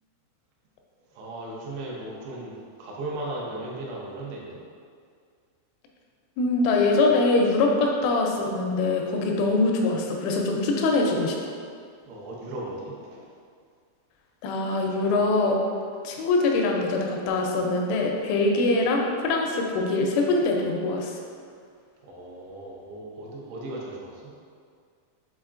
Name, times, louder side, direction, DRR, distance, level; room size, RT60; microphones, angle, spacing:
voice 1, 1.1-4.6 12.0-13.3 22.0-24.3, right 2 dB, 80° right, -4 dB, 2.4 m, -37 dB
voice 2, 6.4-11.5 14.4-15.6 16.0-21.2, left 3 dB, 85° left, 1 dB, 3.0 m, -23 dB
7.2 x 2.8 x 2.4 m, 2.1 s
omnidirectional pair, 5.5 m